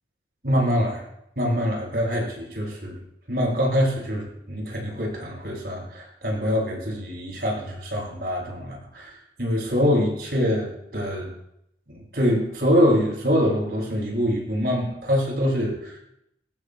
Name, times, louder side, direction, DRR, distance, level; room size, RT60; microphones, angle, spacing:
voice 1, 0.4-1.0 1.4-3.0 3.3-11.3 11.9-16.0, equal, 55° right, -2 dB, 7.6 m, -24 dB
22.5 x 18.5 x 2.3 m, 0.78 s
head